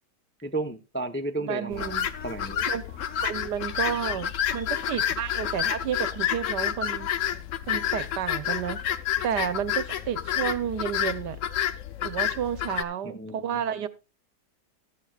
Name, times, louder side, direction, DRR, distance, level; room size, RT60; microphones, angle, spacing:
voice 1, 0.4-2.6 13.0-13.6, right 2 dB, 15° left, 0.4 m, -33 dB
voice 2, 1.4-2.1 2.7-7.1 7.7-8.8 9.2-11.4 12.0-13.9, right 9 dB, 80° right, 1.5 m, -31 dB
sound 1, 1.7-12.8, left 10 dB, 60° left, 1.0 m, -29 dB
15.5 x 12.5 x 2.4 m
omnidirectional pair, 1.8 m